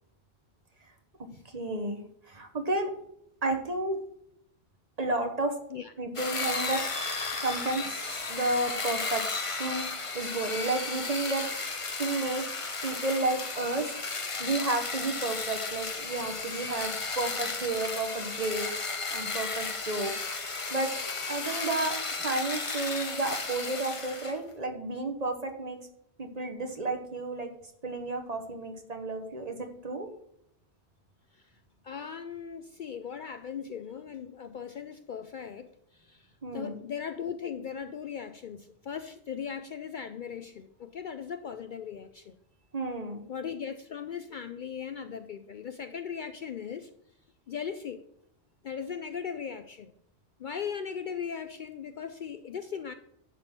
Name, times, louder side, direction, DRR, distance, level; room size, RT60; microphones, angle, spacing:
voice 1, 1.5-2.9 3.4-4.0 5.0-5.6 6.0-6.8 7.4-9.9 10.1-11.5 12.0-12.5 12.8-13.9 14.4-20.1 20.7-20.9 21.3-25.8 26.2-27.5 27.8-30.1 36.4-36.8 42.7-43.2, right 2 dB, 35° right, 5 dB, 1.1 m, -32 dB
sound 1, 6.2-24.4, left 3 dB, 30° left, 0.9 m, -34 dB
voice 2, 31.8-42.4 43.3-46.9 47.5-48.0 48.6-49.9 50.4-52.9, left 7 dB, 60° left, 9 dB, 0.6 m, -38 dB
11.0 x 3.8 x 6.6 m, 0.74 s
omnidirectional pair, 1.1 m